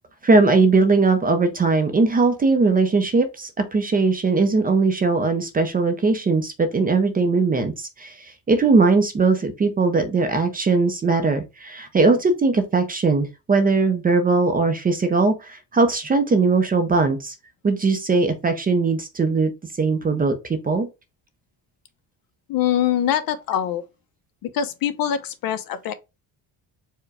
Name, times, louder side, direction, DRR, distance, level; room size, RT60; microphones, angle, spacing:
voice 1, 0.2-17.3 17.6-19.5 19.8-20.9, right 3 dB, 20° right, 0.5 m, -20 dB
voice 2, 22.5-23.8 24.4-25.9, left 10 dB, 55° left, 0.7 m, -23 dB
4.7 x 2.2 x 4.7 m
cardioid pair, 150°, 40 cm